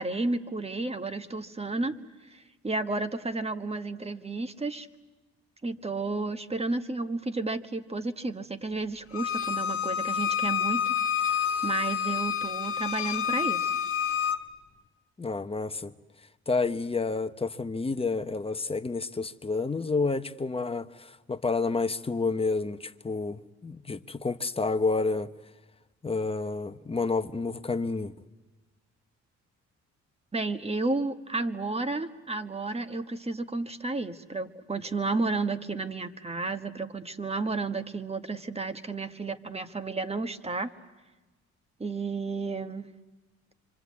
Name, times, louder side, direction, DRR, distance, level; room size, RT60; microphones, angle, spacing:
voice 1, 0.0-2.0 2.3-4.9 5.6-13.8 30.3-40.7 41.8-42.9, right 3 dB, 20° right, 1.4 m, -32 dB
Bowed string instrument, 9.1-14.4, left 8 dB, 50° left, 1.6 m, -28 dB
voice 2, 15.2-15.9 16.5-25.3 26.0-28.1, left 3 dB, 20° left, 0.9 m, -29 dB
25.5 x 25.0 x 8.5 m
cardioid pair, 90°, 30 cm